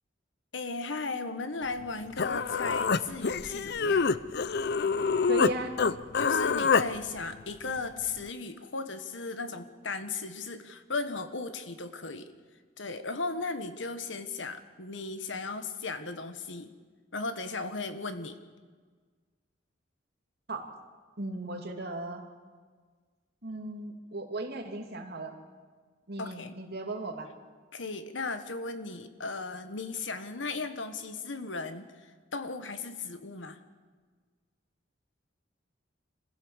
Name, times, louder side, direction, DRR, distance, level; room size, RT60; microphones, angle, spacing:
voice 1, 0.5-4.1 6.2-12.3 12.8-16.7 17.1-18.4 26.2-26.6 27.7-31.9 32.3-33.6, left 3 dB, 75° left, 10 dB, 1.5 m, -36 dB
Human voice, 1.8-1.9 2.2-5.5 5.8-6.9, left 5 dB, 60° left, 0.6 m, -26 dB
voice 2, 5.3-5.8 20.5-20.7 21.2-22.2 23.4-25.4 26.1-27.3, right 1 dB, 60° right, 3 dB, 2.6 m, -36 dB
26.0 x 15.5 x 7.3 m, 1.5 s
head